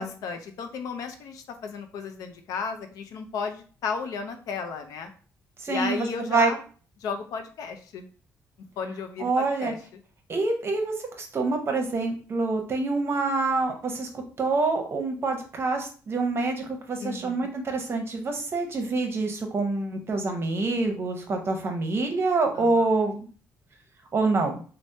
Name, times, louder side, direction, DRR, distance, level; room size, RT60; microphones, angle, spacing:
voice 1, 0.0-5.1 5.7-6.6 7.0-8.0 8.8-9.8 17.0-17.5 22.5-22.9, left 5 dB, 85° left, 7 dB, 0.5 m, -34 dB
voice 2, 5.6-6.5 9.2-9.7 10.3-23.3 24.1-24.6, right 3 dB, 40° right, 4 dB, 0.7 m, -26 dB
3.3 x 2.0 x 2.6 m, 0.40 s
cardioid pair, 105°, 6 cm